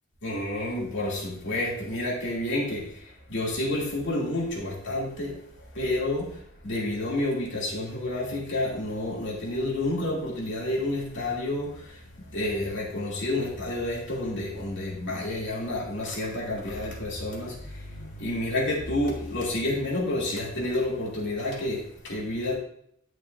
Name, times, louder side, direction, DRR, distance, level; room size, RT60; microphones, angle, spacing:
voice 1, 0.2-12.0 12.3-22.6, left 1 dB, 60° left, -4 dB, 2.8 m, -30 dB
11.5 x 6.2 x 2.7 m, 0.69 s
head